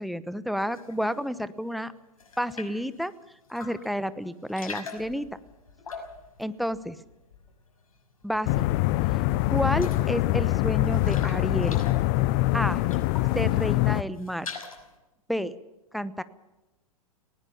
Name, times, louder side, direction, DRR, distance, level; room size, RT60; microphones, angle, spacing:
voice 1, 0.0-1.9 2.4-3.1 3.5-5.3 6.4-7.0 8.2-8.7 9.5-11.8 12.5-12.8 13.3-14.5 15.3-15.5 15.9-16.2, equal, ahead, 16 dB, 1.0 m, -30 dB
sound 1, 0.7-1.3 1.7-2.9 3.4-4.0 4.3-7.7 8.0-8.7 9.0-9.1 9.4-13.4 13.8-15.0, left 5 dB, 75° left, 5.7 m, -43 dB
sound 2, 8.5-14.0, left 17 dB, 45° left, 0.8 m, -24 dB
19.5 x 19.0 x 7.0 m, 1.0 s
figure-of-eight pair, 100°, 18 cm